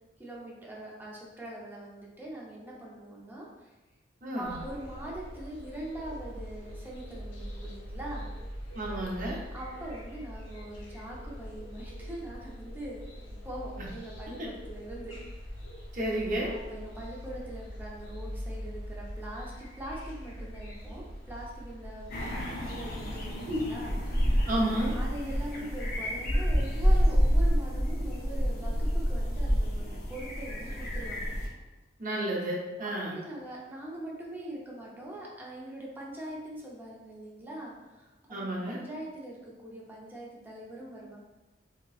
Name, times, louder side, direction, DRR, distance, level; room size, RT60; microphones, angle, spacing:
voice 1, 0.2-3.7 4.4-8.3 9.5-13.1 13.4-15.1 16.5-23.9 24.9-31.3 32.8-41.2, right 1 dB, 10° right, -4 dB, 0.6 m, -42 dB
voice 2, 4.2-4.6 8.7-9.4 15.9-16.5 23.5-23.7 24.4-25.0 32.0-33.1 38.3-38.8, right 1 dB, 45° right, -4 dB, 0.8 m, -31 dB
sound 1, 4.4-23.3, equal, 90° left, 0.7 m, -43 dB
sound 2, 22.1-31.5, equal, 50° left, 0.7 m, -28 dB
3.6 x 2.9 x 2.4 m, 1.1 s
head